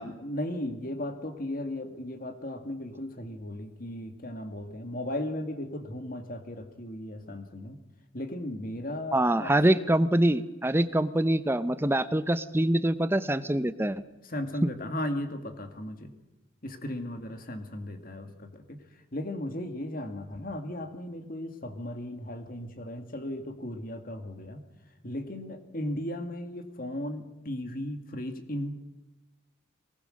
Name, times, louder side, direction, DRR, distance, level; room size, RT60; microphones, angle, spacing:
voice 1, 0.0-7.8 8.1-9.8 14.3-16.1 16.6-18.8 19.1-24.6 25.0-28.7, left 1 dB, 45° left, 7 dB, 2.2 m, -36 dB
voice 2, 9.1-14.0 14.6-14.7, right 1 dB, 10° right, 13 dB, 0.7 m, -24 dB
22.5 x 19.5 x 6.5 m, 1.0 s
head